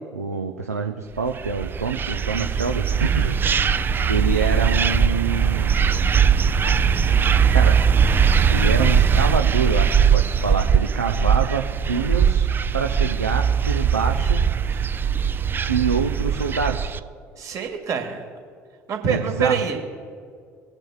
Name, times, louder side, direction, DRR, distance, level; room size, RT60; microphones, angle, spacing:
voice 1, 0.0-3.4 4.1-5.7 7.5-7.8 8.5-12.5 12.7-14.4 14.6-14.9 15.7-16.9 19.1-19.6, right 5 dB, 85° right, 3 dB, 0.5 m, -26 dB
sound 1, 1.3-17.0, right 7 dB, 25° right, 0.4 m, -20 dB
voice 2, 17.4-18.2 18.9-19.8, right 6 dB, 45° right, 4 dB, 1.6 m, -25 dB
20.5 x 8.9 x 2.3 m, 2.2 s
figure-of-eight pair, 55°, 8 cm